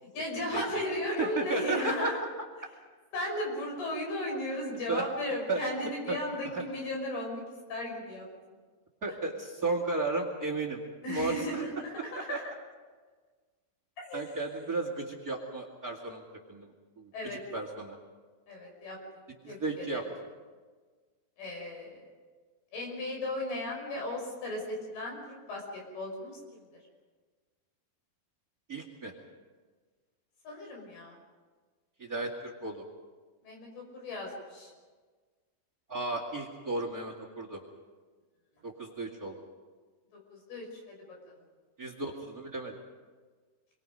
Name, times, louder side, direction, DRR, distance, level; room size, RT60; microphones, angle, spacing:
voice 1, 0.0-2.2 3.1-7.4 7.7-8.3 9.1-9.2 11.0-12.4 14.0-14.3 17.1-17.4 18.5-19.0 19.4-20.0 21.4-22.1 22.7-26.6 30.4-31.2 33.4-34.7 40.1-41.0 41.3-41.4, left 1 dB, 80° left, 0 dB, 7.9 m, -36 dB
voice 2, 1.1-2.2 4.9-5.1 5.5-5.6 6.1-6.6 9.0-10.8 11.1-11.6 12.3-12.4 14.1-16.2 16.5-16.7 17.0-18.0 19.4-20.0 28.7-29.1 32.0-32.8 35.9-37.6 38.6-39.4 41.8-42.7, right 3 dB, 30° right, 2 dB, 2.0 m, -34 dB
28.5 x 23.0 x 5.3 m, 1.4 s
omnidirectional pair, 4.4 m